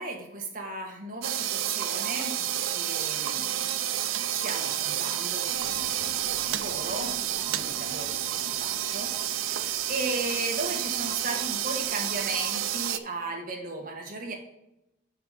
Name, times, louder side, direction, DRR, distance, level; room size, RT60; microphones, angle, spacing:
voice 1, 0.0-14.3, right 2 dB, 45° right, 0 dB, 1.5 m, -36 dB
sound 1, 1.2-13.0, right 11 dB, 90° right, 0.5 m, -30 dB
sound 2, 5.5-12.9, equal, 65° left, 2.8 m, -48 dB
7.4 x 5.1 x 5.0 m, 0.87 s
head